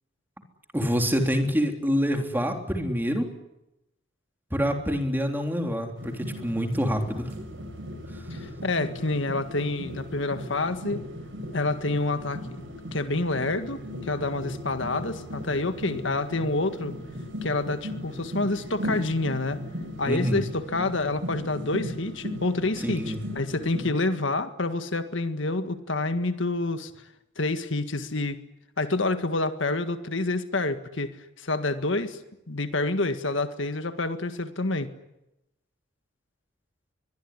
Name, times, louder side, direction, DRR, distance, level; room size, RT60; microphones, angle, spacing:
voice 1, 0.7-3.3 4.5-7.3 20.1-20.5 22.8-23.3, equal, 10° right, 4 dB, 3.5 m, -26 dB
sound 1, 6.0-23.9, left 1 dB, 70° right, 7.5 m, -37 dB
voice 2, 8.3-11.0 11.5-12.6 12.9-16.9 17.4-19.6 20.0-26.9 27.4-28.4 28.8-32.2 32.5-34.9, left 2 dB, 70° left, 9 dB, 1.8 m, -28 dB
23.5 x 22.0 x 9.9 m, 0.88 s
head